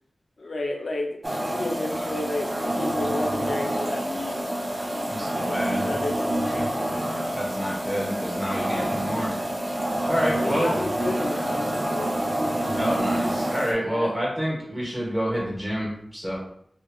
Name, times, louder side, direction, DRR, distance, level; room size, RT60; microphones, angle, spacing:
voice 1, 0.4-1.2 1.4-4.5 4.9-6.7 8.6-8.9 10.3-12.2 13.9-14.1, left 2 dB, 70° left, 1 dB, 0.4 m, -32 dB
sound 1, 1.2-13.7, right 1 dB, 35° right, 0.5 m, -27 dB
voice 2, 5.1-5.9 7.3-9.3 10.1-10.7 12.8-16.4, equal, 15° right, -6 dB, 1.2 m, -28 dB
2.9 x 2.4 x 2.2 m, 0.68 s
wide cardioid pair, 95°, 0 cm